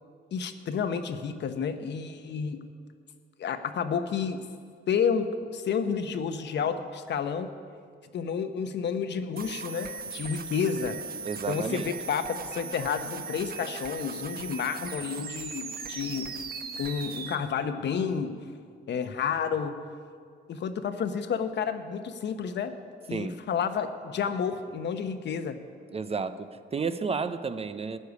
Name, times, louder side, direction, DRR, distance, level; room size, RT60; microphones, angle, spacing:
voice 1, 0.3-2.6 3.4-4.4 4.9-7.5 8.1-11.0 11.5-16.3 16.8-18.3 18.9-19.8 20.5-22.7 23.1-25.6, left 6 dB, 60° left, 8 dB, 1.0 m, -30 dB
sound 1, 9.4-17.4, right 5 dB, 50° right, 1.2 m, -38 dB
voice 2, 11.2-11.9 23.1-23.4 25.9-28.0, right 5 dB, 30° right, 12 dB, 0.6 m, -32 dB
14.0 x 6.7 x 9.5 m, 2.1 s
cardioid pair, 90°, 20 cm